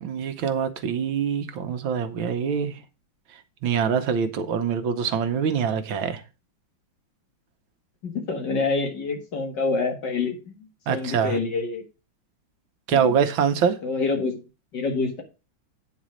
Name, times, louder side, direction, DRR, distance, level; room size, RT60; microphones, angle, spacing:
voice 1, 0.0-2.7 3.6-6.2 10.9-11.3 12.9-13.8, right 7 dB, 85° right, 1.8 m, -24 dB
voice 2, 8.0-11.8 12.9-13.1 13.8-14.4 14.7-15.2, left 4 dB, 60° left, 2.4 m, -27 dB
9.2 x 4.3 x 6.3 m
omnidirectional pair, 2.1 m